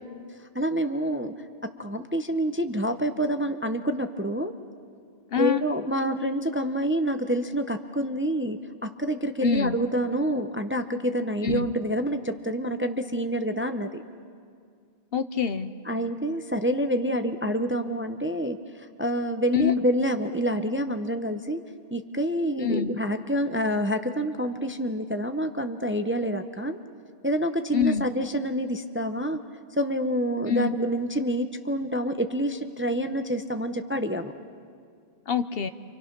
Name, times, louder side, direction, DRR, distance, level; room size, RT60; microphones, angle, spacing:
voice 1, 0.5-1.3 1.8-4.5 5.4-14.0 15.9-21.6 21.9-26.8 27.2-29.4 29.8-34.3, equal, 15° right, 8 dB, 0.6 m, -27 dB
voice 2, 5.3-5.6 9.4-9.8 11.4-11.7 15.1-15.7 19.5-19.8 22.6-22.9 27.7-28.1 30.5-30.7 35.3-35.7, left 7 dB, 60° left, 10 dB, 1.0 m, -25 dB
29.5 x 26.5 x 6.0 m, 2.2 s
omnidirectional pair, 1.2 m